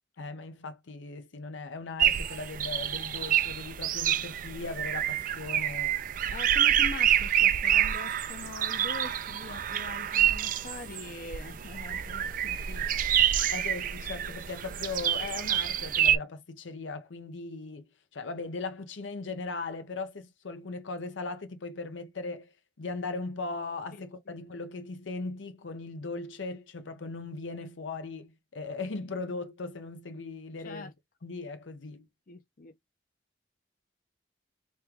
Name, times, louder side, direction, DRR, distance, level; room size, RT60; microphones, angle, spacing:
voice 1, 0.2-5.9 13.5-30.9 31.2-32.1, left 3 dB, 90° left, 0.7 m, -38 dB
sound 1, 2.0-16.2, right 10 dB, 45° right, 0.4 m, -27 dB
voice 2, 6.3-13.0 13.4-13.5 23.9-24.4 30.6-30.9 32.3-32.7, left 3 dB, 50° left, 0.6 m, -43 dB
3.2 x 2.9 x 3.5 m
head